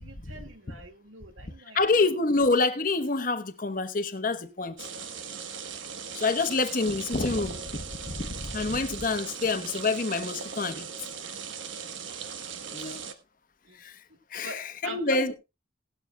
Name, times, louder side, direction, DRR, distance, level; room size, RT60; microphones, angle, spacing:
voice 1, 0.0-1.8 12.8-13.0 13.6-13.8 14.3-15.3, right 2 dB, 90° right, 2.0 m, -43 dB
voice 2, 1.7-4.8 6.1-10.9 12.7-13.0 13.8-13.9 14.3-15.3, left 3 dB, 45° left, 1.0 m, -27 dB
sound 1, 4.8-13.1, right 6 dB, 75° right, 1.2 m, -39 dB
17.0 x 12.5 x 2.2 m
head